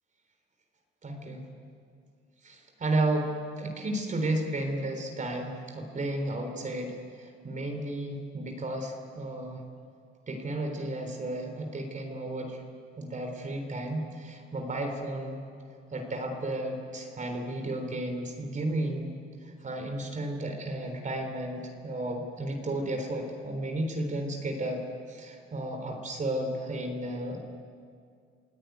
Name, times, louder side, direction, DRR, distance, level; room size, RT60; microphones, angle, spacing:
voice 1, 1.0-1.5 2.4-9.6 10.3-12.6 13.0-15.4 15.9-19.2 19.4-24.8 25.1-27.4, right 1 dB, 40° right, 4 dB, 3.7 m, -33 dB
28.0 x 17.0 x 9.4 m, 2.3 s
cardioid pair, 90°, 20 cm